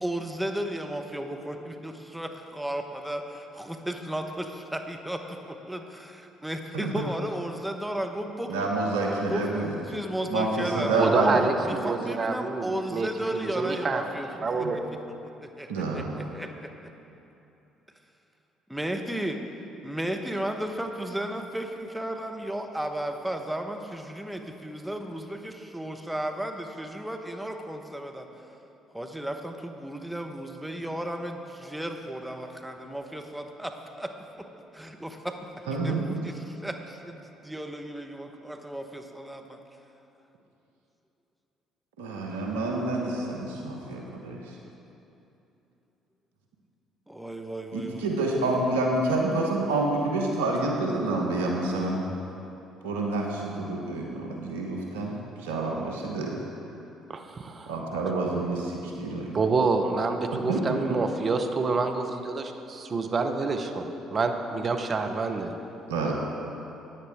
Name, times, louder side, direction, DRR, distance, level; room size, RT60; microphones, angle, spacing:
voice 1, 0.0-8.7 9.3-14.3 14.6-14.7 15.4-16.7 18.7-19.4 19.8-28.3 28.9-34.5 34.7-35.5 35.8-39.6 47.1-48.1, right 1 dB, 5° right, 4 dB, 1.1 m, -34 dB
voice 2, 6.7-7.0 8.5-9.7 10.3-11.5 14.6-14.7 15.7-16.2 35.7-36.1 42.0-44.5 47.7-52.0 52.8-56.4 57.7-59.4 60.3-60.8 65.9-66.1, right 2 dB, 85° right, 0 dB, 1.1 m, -28 dB
voice 3, 11.0-14.1 14.4-14.8 57.1-57.7 59.3-65.5, right 4 dB, 45° right, 6 dB, 0.9 m, -27 dB
14.0 x 9.5 x 3.6 m, 2.9 s
hypercardioid pair, 55°, 0 cm